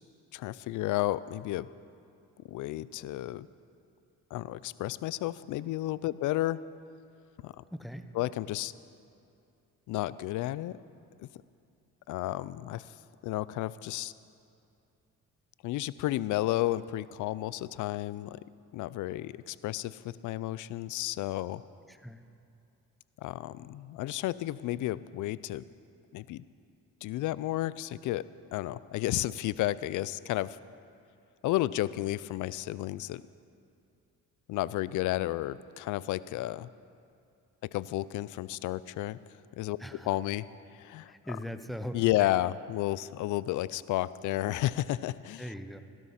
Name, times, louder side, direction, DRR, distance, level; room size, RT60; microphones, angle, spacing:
voice 1, 0.3-1.7 2.5-3.5 4.3-6.6 7.4-7.6 8.1-8.7 9.9-10.8 11.2-11.3 12.1-12.9 13.2-14.1 15.6-18.4 18.7-21.6 23.2-25.6 26.1-26.4 27.0-28.2 28.5-30.6 31.4-33.2 34.5-36.7 37.7-39.2 39.5-39.8 40.0-40.4 40.7-41.1 41.9-45.5, left 15 dB, 80° left, 18 dB, 0.5 m, -32 dB
voice 2, 7.7-8.1 21.9-22.2 39.8-40.1 41.1-42.0 45.4-45.8, equal, ahead, 8 dB, 0.8 m, -40 dB
15.0 x 12.5 x 5.7 m, 2.6 s
cardioid pair, 90°, 30 cm